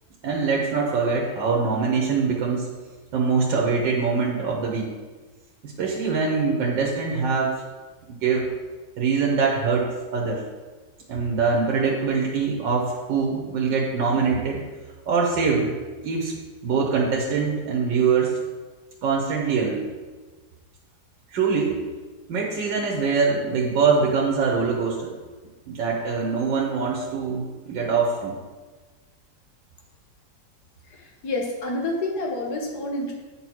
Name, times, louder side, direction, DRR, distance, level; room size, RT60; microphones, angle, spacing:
voice 1, 0.2-2.7 3.1-4.9 5.6-7.6 8.1-8.5 9.0-10.5 11.1-14.6 15.1-15.7 16.0-16.3 16.6-18.4 19.0-19.8 21.3-21.8 22.3-25.1 25.7-28.3, right 5 dB, 85° right, -2 dB, 1.8 m, -23 dB
voice 2, 30.9-33.1, left 2 dB, 60° left, 1 dB, 1.8 m, -28 dB
9.0 x 5.6 x 4.6 m, 1.3 s
omnidirectional pair, 1.9 m